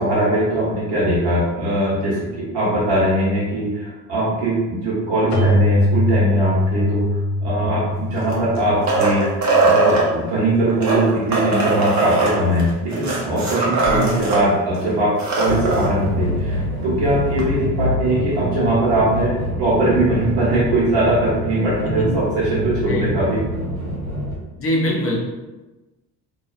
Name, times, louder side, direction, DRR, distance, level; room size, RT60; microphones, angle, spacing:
voice 1, 0.0-23.4, right 1 dB, 60° right, -7 dB, 1.4 m, -21 dB
Keyboard (musical), 5.3-9.8, left 1 dB, 80° left, 0.6 m, -22 dB
sound 1, 8.1-10.1 10.7-14.4 14.7-14.8 15.1-15.9 17.4-17.5, right 3 dB, 35° right, 0.8 m, -20 dB
sound 2, 15.5-24.3, equal, 85° right, 1.4 m, -26 dB
voice 2, 24.6-25.2, left 1 dB, 30° left, -1 dB, 0.7 m, -23 dB
2.8 x 2.3 x 2.5 m, 1.1 s
figure-of-eight pair, 55°, 48 cm